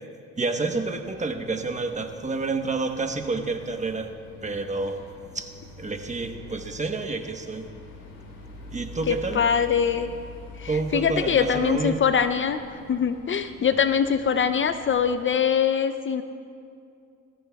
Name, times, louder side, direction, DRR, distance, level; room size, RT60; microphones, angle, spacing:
voice 1, 0.4-4.1 4.4-5.0 5.3-5.5 5.8-7.7 8.7-9.5 10.7-12.0, right 3 dB, 25° right, 5 dB, 1.1 m, -29 dB
sound 1, 0.6-15.3, left 3 dB, 85° left, 3.8 m, -45 dB
voice 2, 9.1-10.1 10.6-12.6 12.9-16.2, left 7 dB, 40° left, 10 dB, 0.5 m, -23 dB
20.0 x 15.0 x 2.3 m, 2.4 s
cardioid pair, 90°, 30 cm